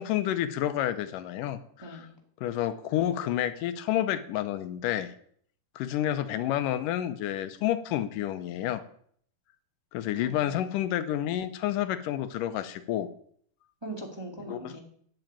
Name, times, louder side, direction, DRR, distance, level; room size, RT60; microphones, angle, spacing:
voice 1, 0.0-2.1 2.4-5.1 5.8-8.8 9.9-13.1 14.5-14.8, left 12 dB, 80° left, 12 dB, 2.4 m, -29 dB
voice 2, 1.8-2.1 10.2-10.8 13.8-14.8, right 1 dB, 10° right, 1 dB, 1.7 m, -41 dB
10.5 x 7.9 x 8.8 m, 0.62 s
omnidirectional pair, 3.8 m